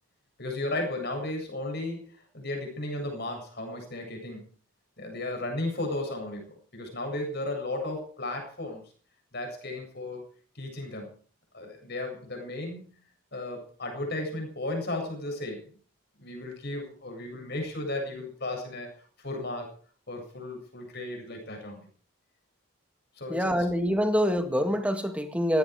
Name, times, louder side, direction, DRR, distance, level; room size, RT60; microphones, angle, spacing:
voice 1, 0.4-4.4 5.0-8.8 9.3-10.3 10.5-11.1 11.5-12.9 13.3-15.7 16.2-18.9 19.2-19.7 20.1-21.9 23.2-23.6, left 2 dB, 50° left, 3 dB, 7.8 m, -35 dB
voice 2, 23.3-25.6, equal, 5° right, 6 dB, 1.9 m, -25 dB
18.5 x 16.0 x 4.9 m, 0.44 s
head